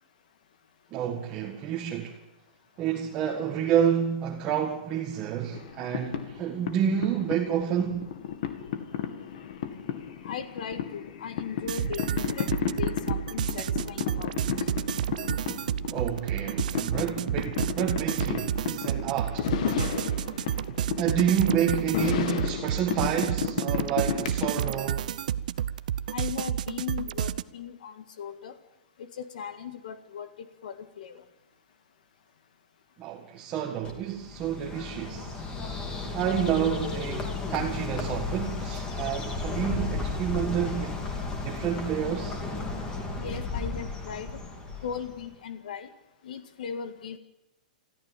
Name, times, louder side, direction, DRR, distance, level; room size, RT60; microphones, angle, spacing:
voice 1, 0.9-2.2 2.8-8.1 15.9-19.5 21.0-25.1 33.0-35.4 36.1-42.4, right 9 dB, 25° right, 1.7 m, -29 dB
sound 1, 5.5-24.9, left 9 dB, 55° left, 2.2 m, -33 dB
voice 2, 10.2-12.5 12.8-14.3 26.1-28.6 29.0-31.2 43.2-44.4 44.8-45.9 46.2-47.2, left 7 dB, 70° left, 1.8 m, -38 dB
sound 2, 11.7-27.4, right 10 dB, 65° right, 0.7 m, -31 dB
Bird, 33.8-45.3, left 3 dB, 15° left, 2.8 m, -34 dB
21.0 x 14.0 x 9.1 m
hypercardioid pair, 160°, 5 cm